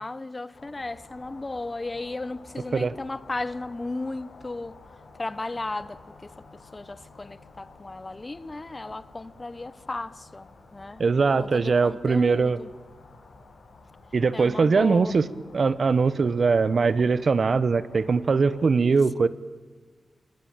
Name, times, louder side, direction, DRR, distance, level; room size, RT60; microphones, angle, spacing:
voice 1, 0.0-4.8 5.2-6.3 6.7-12.7 14.3-15.1, left 2 dB, 25° left, 0.8 m, -35 dB
sound 1, 0.5-18.7, left 3 dB, 85° left, 6.4 m, -51 dB
voice 2, 11.0-12.6 14.1-15.3 15.5-19.3, right 4 dB, 50° right, 0.9 m, -21 dB
29.0 x 21.5 x 9.0 m
wide cardioid pair, 120°, 0 cm